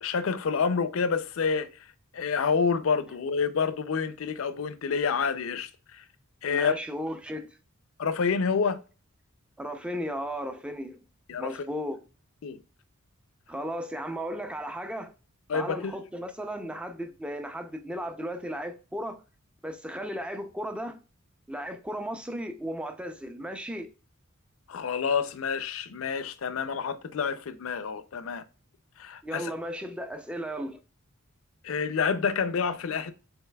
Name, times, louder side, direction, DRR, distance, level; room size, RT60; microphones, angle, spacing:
voice 1, 0.0-1.9 2.1-6.0 6.4-6.7 8.0-8.8 11.3-11.6 12.4-12.6 15.5-16.0 24.7-28.4 29.0-29.5 31.6-33.1, left 5 dB, 70° left, 0.4 m, -28 dB
voice 2, 6.5-7.6 9.6-11.0 11.4-12.0 13.5-15.1 15.5-19.2 19.6-21.0 21.5-23.9 29.2-30.8, equal, 5° right, 0.4 m, -35 dB
5.5 x 3.9 x 2.2 m
head